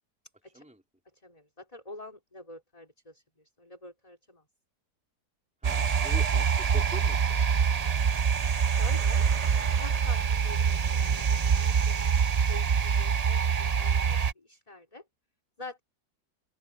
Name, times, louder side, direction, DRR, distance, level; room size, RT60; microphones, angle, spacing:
voice 1, 1.2-3.2 3.6-4.4 8.6-9.3 9.7-14.2 14.4-15.0 15.6-15.8, left 2 dB, 20° left, 3.5 m, -46 dB
voice 2, 5.6-7.4, right 1 dB, 5° right, 4.0 m, -44 dB
sound 1, 5.6-14.3, right 6 dB, 90° right, 0.3 m, -25 dB
open air
omnidirectional pair, 1.8 m